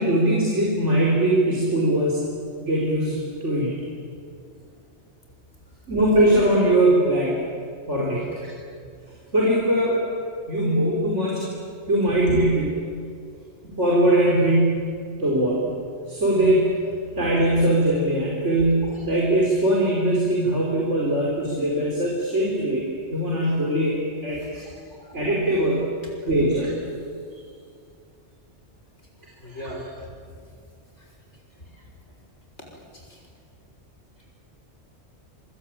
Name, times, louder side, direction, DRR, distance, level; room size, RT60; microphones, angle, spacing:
voice 1, 0.0-2.2 2.6-3.7 5.9-7.4 7.9-8.5 9.3-10.0 10.5-11.4 11.9-12.8 13.6-14.9 15.2-15.6 16.1-16.7 17.2-22.8 23.1-24.6 25.0-25.8 26.2-26.7 29.5-29.6, right 1 dB, 85° right, -4 dB, 4.8 m, -21 dB
voice 2, 29.4-30.1 31.0-31.1 31.6-32.1 32.7-33.2 34.2-34.3, equal, 70° left, 0 dB, 6.3 m, -41 dB
26.5 x 24.5 x 9.1 m, 2.3 s
omnidirectional pair, 1.2 m